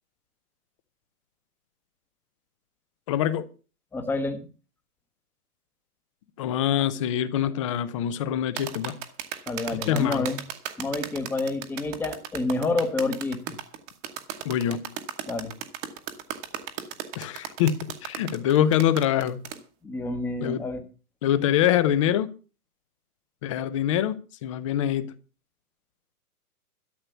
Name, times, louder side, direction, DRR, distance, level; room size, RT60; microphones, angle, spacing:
voice 1, 3.1-3.5 6.4-8.9 9.7-10.3 14.4-14.9 17.2-19.4 20.4-20.6 21.2-22.3 23.4-25.1, left 10 dB, 20° left, 15 dB, 0.7 m, -24 dB
voice 2, 3.9-4.5 9.5-10.4 10.8-13.6 15.3-15.5 19.8-20.8, left 3 dB, 5° left, 6 dB, 1.0 m, -28 dB
sound 1, 8.6-19.6, right 10 dB, 20° right, 1.1 m, -36 dB
13.0 x 6.7 x 8.2 m, 0.35 s
hypercardioid pair, 150°, 45 cm